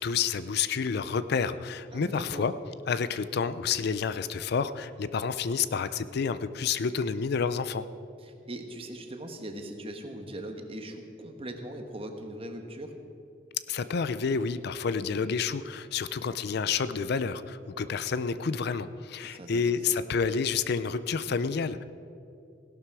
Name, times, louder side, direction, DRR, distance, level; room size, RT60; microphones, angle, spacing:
voice 1, 0.0-2.5 2.9-7.8 13.7-21.8, left 5 dB, 55° left, 14 dB, 0.4 m, -29 dB
voice 2, 1.9-2.5 8.2-12.9 19.2-19.7, right 1 dB, 30° right, 5 dB, 1.3 m, -40 dB
16.5 x 12.0 x 4.8 m, 2.7 s
head